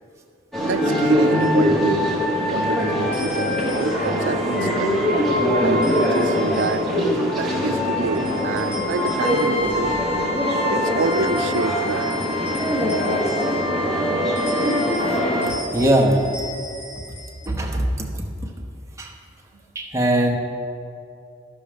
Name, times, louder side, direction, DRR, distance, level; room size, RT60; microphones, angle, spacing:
sound 1, 0.5-15.5, equal, ahead, 1.3 m, -22 dB
voice 1, 0.6-2.0 2.5-5.0 5.6-9.9 10.7-12.1, right 4 dB, 85° right, 12 dB, 0.4 m, -27 dB
sound 2, 1.4-1.6 3.1-4.2 5.8-7.1 8.1-9.9 11.0-13.9 14.4-17.5, left 1 dB, 65° left, 2.2 m, -40 dB
Trumpet, 9.2-15.6, left 5 dB, 30° left, 0.4 m, -31 dB
voice 2, 15.7-16.2 17.5-18.2 19.0-19.1 19.7-20.3, right 1 dB, 15° right, 0 dB, 0.9 m, -20 dB
11.5 x 6.3 x 5.1 m, 2.5 s
head